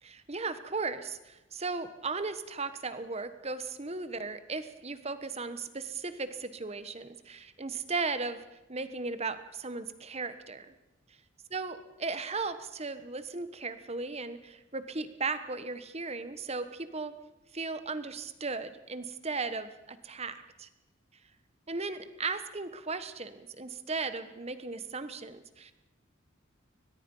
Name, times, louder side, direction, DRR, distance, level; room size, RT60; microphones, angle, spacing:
voice 1, 0.0-8.4 8.7-10.7 11.5-17.1 17.5-20.7 21.7-25.7, right 4 dB, 30° right, 11 dB, 1.2 m, -36 dB
22.5 x 20.5 x 5.6 m, 0.98 s
head